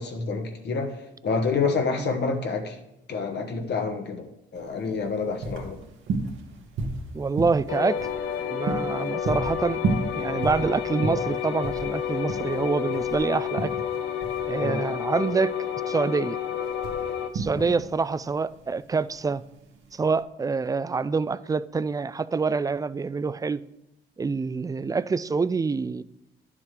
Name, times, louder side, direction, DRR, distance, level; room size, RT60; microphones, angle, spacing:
voice 1, 0.0-2.8 3.1-5.8 14.6-14.8 17.5-17.7, left 4 dB, 60° left, 1.3 m, -28 dB
sound 1, 4.6-20.2, right 3 dB, 75° right, 1.4 m, -33 dB
voice 2, 7.1-8.0 8.5-9.8 10.1-13.7 14.5-15.5 15.9-16.4 17.3-19.4 19.9-23.6 24.2-26.0, right 4 dB, 20° right, 0.3 m, -26 dB
sound 2, 7.7-17.3, left 9 dB, 85° left, 0.7 m, -30 dB
10.5 x 7.2 x 3.3 m
cardioid pair, 90°, 20 cm